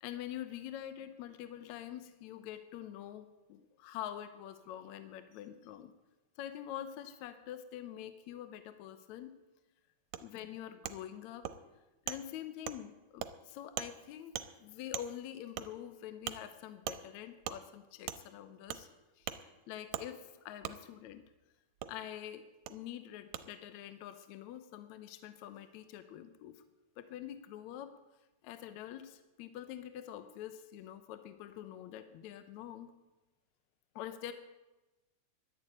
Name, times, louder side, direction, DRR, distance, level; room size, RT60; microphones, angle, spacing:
voice 1, 0.0-5.9 6.4-9.4 10.2-11.5 12.1-18.9 19.2-19.3 19.7-21.2 21.9-22.4 22.7-26.6 27.0-27.9 28.4-32.9 34.0-34.3, left 11 dB, 75° left, 10 dB, 2.1 m, -45 dB
Wood, 10.1-10.2 10.8-11.0 11.4-11.6 12.1-12.2 12.7-12.8 13.2-13.3 13.8-13.9 14.3-14.5 14.9-15.1 15.6-15.7 16.3-16.4 16.9-17.0 17.4-17.6 18.1-18.2 18.7-18.8 19.3-19.4 19.9-20.1 20.6-20.8 21.8-21.9 22.7-22.8 23.3-23.4, right 11 dB, 80° right, 2.0 m, -39 dB
11.5 x 10.5 x 8.8 m, 1.1 s
omnidirectional pair, 3.4 m